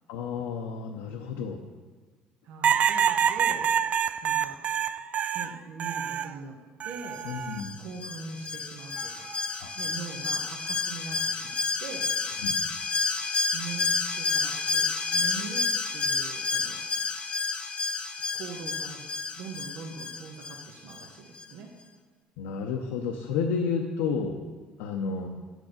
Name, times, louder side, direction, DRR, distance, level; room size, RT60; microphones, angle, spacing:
voice 1, 0.1-1.6 7.2-7.8 9.6-9.7 12.4-12.6 22.4-24.4 24.8-25.3, left 5 dB, 85° left, 3 dB, 0.6 m, -31 dB
voice 2, 2.4-4.0 4.2-4.6 5.3-7.3 7.8-9.3 9.8-12.1 13.5-16.8 18.3-19.0 19.4-21.7 25.1-25.3, right 4 dB, 75° right, 1 dB, 1.0 m, -41 dB
sound 1, 2.6-6.3 6.8-7.6 9.0-9.4, right 8 dB, 45° right, 0.3 m, -27 dB
Alarm, 7.6-21.1 21.4-21.5, left 4 dB, 40° left, 0.9 m, -30 dB
8.2 x 6.3 x 5.1 m, 1.4 s
supercardioid pair, 75°, 3 cm